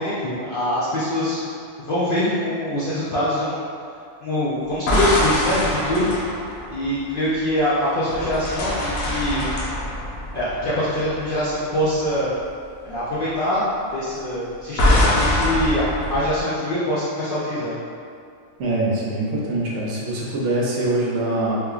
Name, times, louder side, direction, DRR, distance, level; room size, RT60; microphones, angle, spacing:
voice 1, 0.0-1.4 1.8-3.6 4.2-6.1 6.7-9.4 10.3-12.3 12.8-13.6 13.9-17.7, left 1 dB, 60° left, -10 dB, 0.6 m, -24 dB
sound 1, 4.7-7.6 8.1-11.5 11.8-12.1 14.8-16.4, left 1 dB, 80° left, 1.0 m, -23 dB
voice 2, 18.6-21.6, right 2 dB, 65° right, -5 dB, 0.9 m, -23 dB
3.6 x 2.9 x 2.3 m, 2.4 s
omnidirectional pair, 1.4 m